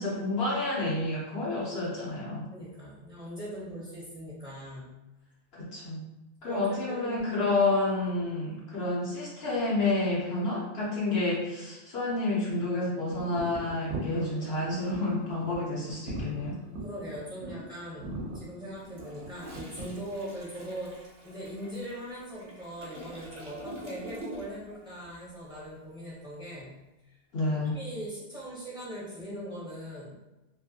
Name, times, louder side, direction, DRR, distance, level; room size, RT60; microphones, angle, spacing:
voice 1, 0.0-2.5 5.5-6.0 6.4-16.6 27.3-27.8, left 2 dB, 70° left, -6 dB, 0.9 m, -29 dB
voice 2, 2.5-4.9 6.4-7.2 16.8-27.2 27.6-30.2, equal, 5° right, -9 dB, 0.5 m, -41 dB
sound 1, 13.1-20.1, right 2 dB, 85° right, 0.9 m, -41 dB
Toilet flush, 18.8-24.7 25.0-25.3, right 1 dB, 50° right, 0.6 m, -45 dB
2.5 x 2.5 x 2.6 m, 1.1 s
omnidirectional pair, 1.1 m